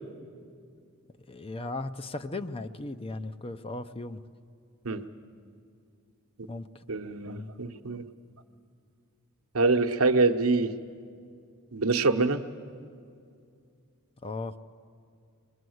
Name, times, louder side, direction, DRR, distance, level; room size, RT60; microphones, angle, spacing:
voice 1, 1.3-4.2 6.4-6.8 7.3-7.5 14.2-14.6, left 2 dB, 25° left, 10 dB, 0.6 m, -37 dB
voice 2, 6.9-8.0 9.5-10.7 11.7-12.4, right 3 dB, 70° right, 6 dB, 1.0 m, -25 dB
26.0 x 20.5 x 7.9 m, 2.4 s
head